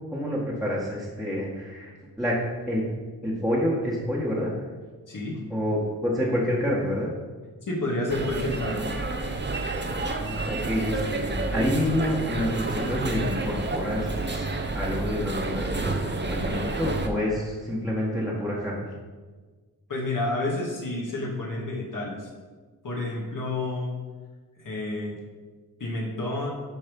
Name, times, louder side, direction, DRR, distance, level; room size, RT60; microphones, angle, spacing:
voice 1, 0.1-2.8 3.2-4.5 5.5-7.1 10.2-14.5 14.7-18.9, equal, ahead, -7 dB, 1.6 m, -28 dB
voice 2, 5.1-5.4 7.6-8.9 19.9-22.3 22.8-23.9 24.6-25.1 25.8-26.5, left 2 dB, 60° left, -2 dB, 2.2 m, -30 dB
sound 1, 8.1-17.1, right 2 dB, 30° right, 0.9 m, -30 dB
10.5 x 5.3 x 5.3 m, 1.4 s
wide cardioid pair, 135°, 37 cm